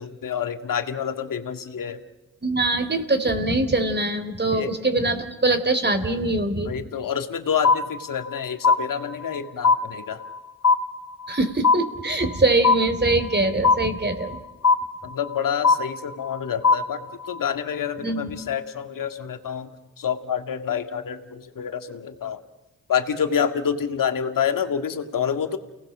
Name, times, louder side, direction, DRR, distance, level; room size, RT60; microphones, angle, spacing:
voice 1, 0.0-2.0 4.5-4.7 6.6-10.2 15.0-17.0 17.3-19.7 20.0-22.4 22.9-25.6, left 7 dB, 65° left, 7 dB, 2.1 m, -27 dB
voice 2, 2.4-6.7 11.3-14.4 18.0-18.4, right 2 dB, 30° right, 9 dB, 3.7 m, -23 dB
sound 1, 7.6-8.4 8.6-9.4 9.6-10.4 10.6-11.4 11.6-12.4 12.6-13.4 13.6-14.4 14.6-15.4 15.6-16.4 16.6-17.4, left 4 dB, 45° left, 1.3 m, -20 dB
29.5 x 19.0 x 6.3 m, 1.1 s
supercardioid pair, 50°, 35 cm